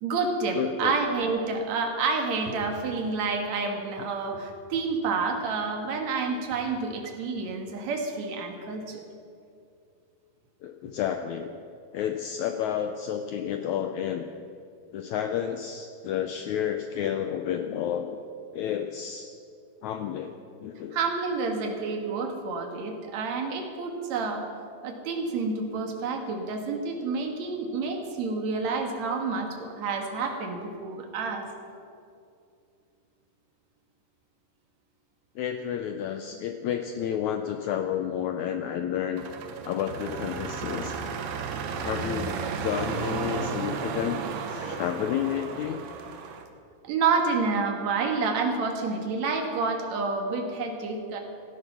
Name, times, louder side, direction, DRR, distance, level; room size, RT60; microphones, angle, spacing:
voice 1, 0.0-9.0 20.9-24.4 24.8-31.5 46.8-51.2, right 4 dB, 55° right, 3 dB, 2.6 m, -29 dB
voice 2, 0.5-0.9 10.6-11.5 11.9-14.3 14.9-18.2 18.5-19.3 19.8-20.3 20.6-21.0 35.3-39.2 39.6-41.0 41.8-44.2 44.5-45.8, left 9 dB, 85° left, 6 dB, 1.6 m, -30 dB
sound 1, 39.2-46.4, right 5 dB, 75° right, 2.7 m, -33 dB
16.5 x 13.5 x 6.0 m, 2.4 s
omnidirectional pair, 4.1 m